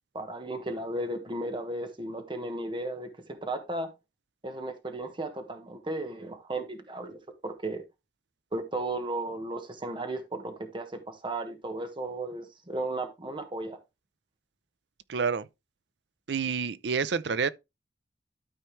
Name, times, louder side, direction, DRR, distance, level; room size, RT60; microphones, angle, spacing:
voice 1, 0.1-3.9 4.4-7.8 8.5-13.8, right 2 dB, 30° right, 1.2 m, -35 dB
voice 2, 15.1-15.5 16.3-17.5, right 5 dB, 70° right, 0.5 m, -28 dB
12.5 x 4.4 x 3.2 m
head